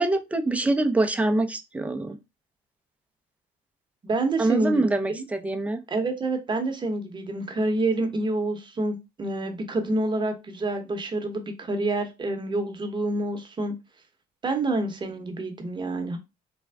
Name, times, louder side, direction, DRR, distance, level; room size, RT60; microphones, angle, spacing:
voice 1, 0.0-2.2 4.4-5.8, right 2 dB, 10° right, 0.4 m, -24 dB
voice 2, 4.0-4.8 5.1-5.2 5.9-13.7 14.4-16.2, right 2 dB, 30° right, 0.8 m, -27 dB
3.4 x 2.1 x 3.3 m
cardioid pair, 110°, 17 cm